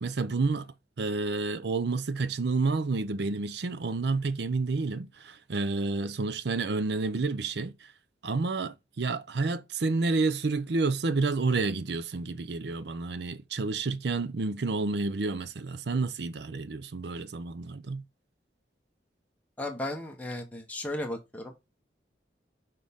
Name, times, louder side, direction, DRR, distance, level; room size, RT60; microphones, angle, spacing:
voice 1, 0.0-7.9 8.2-18.0, right 3 dB, 70° right, 0.6 m, -30 dB
voice 2, 19.6-21.5, left 1 dB, 10° left, 0.9 m, -35 dB
6.3 x 4.2 x 3.5 m
head